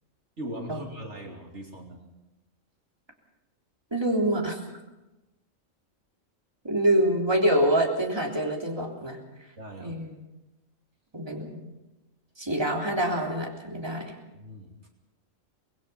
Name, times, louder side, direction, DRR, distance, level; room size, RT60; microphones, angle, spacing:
voice 1, 0.4-2.1 9.6-10.0 14.4-14.7, right 1 dB, 60° right, 1 dB, 2.9 m, -39 dB
voice 2, 3.9-4.8 6.6-9.2 9.8-10.2 11.1-11.6 12.4-14.2, right 1 dB, 20° right, 0 dB, 3.5 m, -26 dB
25.5 x 20.0 x 5.8 m, 1.0 s
omnidirectional pair, 1.3 m